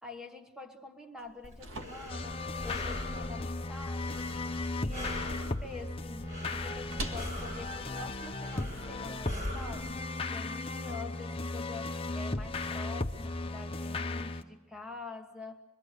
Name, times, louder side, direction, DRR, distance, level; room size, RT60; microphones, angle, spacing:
voice 1, 0.0-10.0 10.3-15.6, left 3 dB, 5° right, 6 dB, 1.2 m, -46 dB
sound 1, 1.2-9.1, right 1 dB, 90° right, 2.0 m, -47 dB
Breathing, 1.4-9.8, left 1 dB, 35° right, 7.5 m, -43 dB
sound 2, 2.1-14.4, left 2 dB, 25° left, 0.7 m, -36 dB
26.0 x 22.0 x 6.6 m, 1.2 s
head